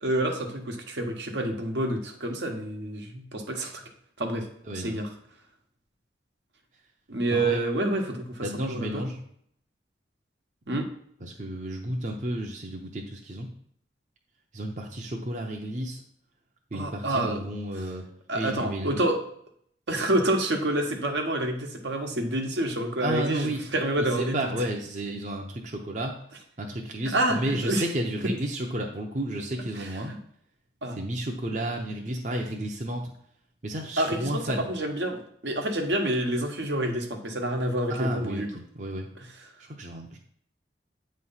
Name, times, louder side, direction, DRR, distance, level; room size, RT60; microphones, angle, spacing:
voice 1, 0.0-3.8 4.2-4.5 4.7-5.1 7.1-9.0 10.7-10.9 16.7-17.4 18.3-19.2 19.9-24.4 27.1-27.8 30.8-31.0 34.0-34.4 34.7-38.5, right 1 dB, 80° right, 3 dB, 1.2 m, -28 dB
voice 2, 4.6-5.0 7.3-7.6 8.4-9.2 11.2-13.5 14.5-16.0 16.7-19.0 23.0-23.6 24.0-26.2 26.6-30.1 30.9-33.2 33.6-34.7 37.9-39.1 39.6-40.2, right 1 dB, 40° right, 1 dB, 0.7 m, -32 dB
8.7 x 3.2 x 5.6 m, 0.66 s
head